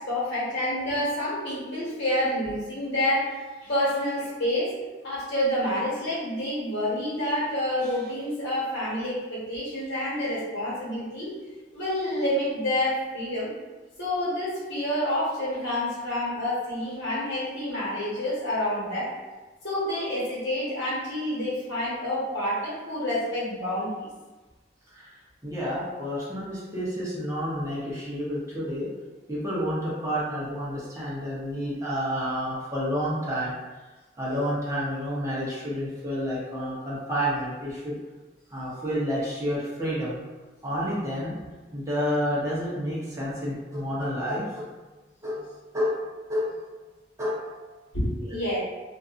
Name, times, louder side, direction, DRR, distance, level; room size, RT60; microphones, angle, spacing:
voice 1, 0.0-3.3 3.6-4.7 5.0-11.3 11.7-13.5 14.0-19.1 19.6-24.1 47.9-48.6, left 1 dB, 80° left, -8 dB, 1.2 m, -28 dB
voice 2, 25.4-28.9 29.3-33.5 34.2-38.0 38.5-40.2 40.6-41.4 41.7-44.7 45.2-45.4 45.7-46.0 46.3-46.5 47.2-47.5 48.3-48.4, equal, 20° right, -8 dB, 0.8 m, -29 dB
2.6 x 2.4 x 2.4 m, 1.2 s
head